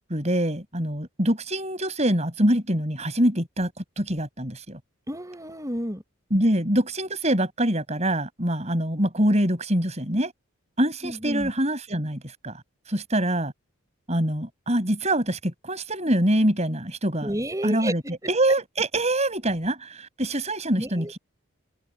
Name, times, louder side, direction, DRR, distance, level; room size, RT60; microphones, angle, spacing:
voice 1, 0.1-4.8 6.3-10.3 10.8-12.6 12.9-13.5 14.1-17.3 17.6-21.2, right 1 dB, 30° right, 6.4 m, -24 dB
voice 2, 5.1-6.0 11.0-11.5 17.2-17.9 20.8-21.1, equal, 15° right, 6.9 m, -31 dB
head